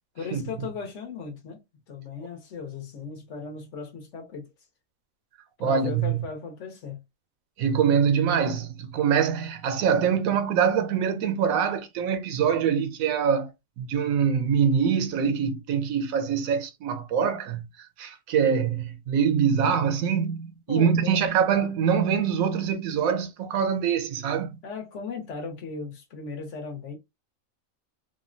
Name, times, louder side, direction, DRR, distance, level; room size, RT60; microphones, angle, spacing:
voice 1, 0.1-1.6 1.9-4.5 5.6-7.0 20.7-21.3 24.6-27.0, left 5 dB, 65° left, 1.1 m, -37 dB
voice 2, 5.6-6.2 7.6-13.5 13.8-17.7 18.0-24.6, right 7 dB, 90° right, 1.0 m, -24 dB
3.5 x 2.1 x 2.5 m
omnidirectional pair, 1.4 m